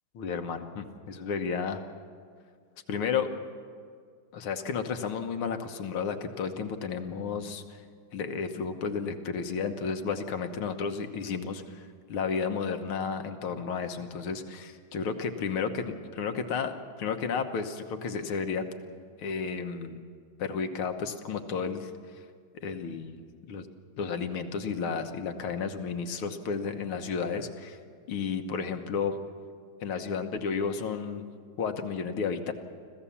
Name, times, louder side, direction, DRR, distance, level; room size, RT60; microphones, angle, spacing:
voice 1, 0.1-1.8 2.9-3.3 4.3-7.8 8.1-18.7 19.2-20.0 20.4-21.9 22.5-23.2 23.5-23.7 24.0-27.8 28.1-29.2 29.8-31.3 31.6-32.5, left 5 dB, 80° left, 6 dB, 2.0 m, -32 dB
25.0 x 15.5 x 7.2 m, 2.1 s
omnidirectional pair, 2.3 m